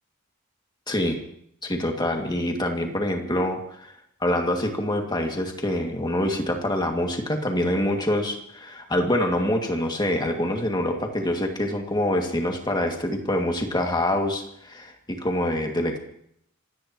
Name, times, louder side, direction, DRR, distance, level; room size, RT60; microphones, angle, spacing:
voice 1, 0.9-1.2 1.6-3.9 4.2-16.0, left 1 dB, 20° left, 2 dB, 2.4 m, -25 dB
26.0 x 17.0 x 3.1 m, 0.70 s
head